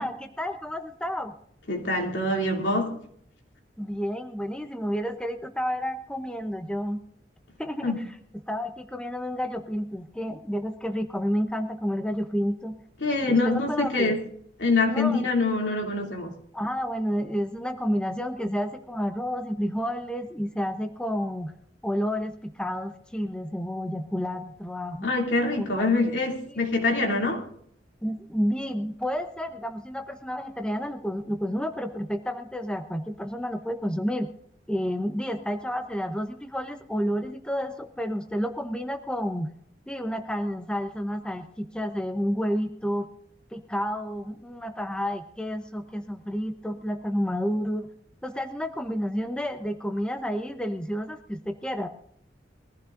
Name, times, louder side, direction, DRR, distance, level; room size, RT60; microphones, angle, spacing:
voice 1, 0.0-1.3 3.8-7.0 7.6-7.9 8.5-12.7 13.3-14.2 14.9-15.3 16.5-21.5 21.8-25.1 25.6-26.0 26.5-26.6 28.0-34.3 34.7-39.5 39.9-43.1 43.5-47.9 48.2-51.9, equal, 5° left, 5 dB, 0.8 m, -30 dB
voice 2, 1.7-2.9 7.8-8.0 13.0-14.2 14.6-16.4 25.0-27.4, left 3 dB, 75° left, 0 dB, 2.9 m, -25 dB
22.5 x 15.0 x 2.6 m, 0.65 s
head